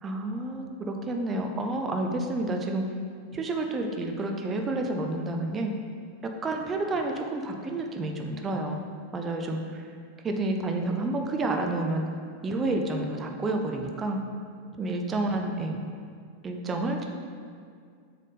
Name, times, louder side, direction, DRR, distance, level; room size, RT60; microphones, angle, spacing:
voice 1, 0.0-2.8 3.3-5.7 6.2-8.8 9.1-9.8 10.2-12.1 12.4-14.2 14.8-15.8 16.4-17.1, right 2 dB, 20° right, 3 dB, 0.6 m, -29 dB
7.3 x 3.3 x 4.0 m, 2.2 s
figure-of-eight pair, 90°, 0 cm